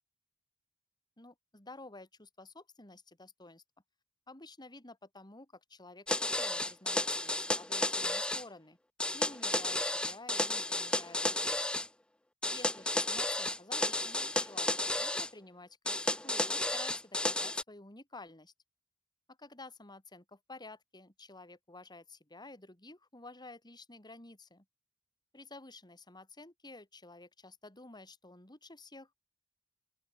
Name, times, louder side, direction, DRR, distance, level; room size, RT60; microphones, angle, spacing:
voice 1, 1.2-3.6 4.3-8.8 9.1-11.7 12.5-18.5 19.4-24.6 25.3-29.1, left 2 dB, 20° left, 3.7 m, -52 dB
sound 1, 6.1-8.4 9.0-11.9 12.4-15.3 15.9-17.6, left 1 dB, 5° left, 0.5 m, -32 dB
open air
head